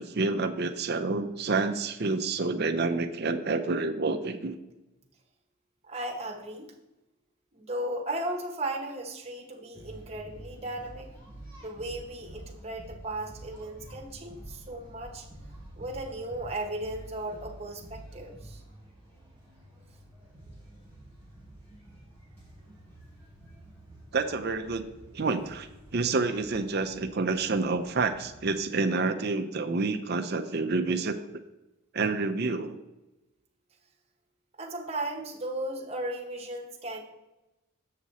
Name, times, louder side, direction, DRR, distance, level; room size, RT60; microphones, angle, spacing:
voice 1, 0.0-4.6 24.1-24.9 25.1-25.7 25.9-31.2 31.9-32.8, right 3 dB, 45° right, 7 dB, 0.6 m, -28 dB
voice 2, 5.9-6.7 7.5-11.1 11.6-15.3 15.8-18.6 34.6-37.0, right 1 dB, 25° right, 1 dB, 1.1 m, -36 dB
sound 1, 9.7-28.6, right 1 dB, 10° left, 2.8 m, -49 dB
7.6 x 6.1 x 4.1 m, 1.0 s
head